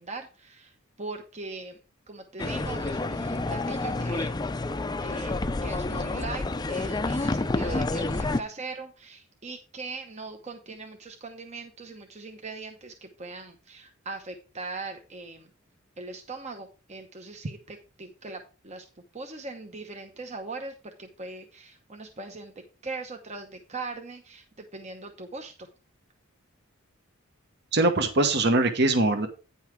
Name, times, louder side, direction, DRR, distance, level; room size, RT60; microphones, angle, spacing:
voice 1, 0.0-1.8 2.1-4.4 5.0-15.5 16.0-22.5 22.8-25.7, right 3 dB, 30° right, 4 dB, 0.9 m, -40 dB
sound 1, 2.4-8.4, left 2 dB, 20° left, 0.4 m, -29 dB
voice 2, 27.7-29.3, right 2 dB, 55° right, 8 dB, 1.1 m, -22 dB
9.6 x 5.6 x 4.6 m, 0.32 s
head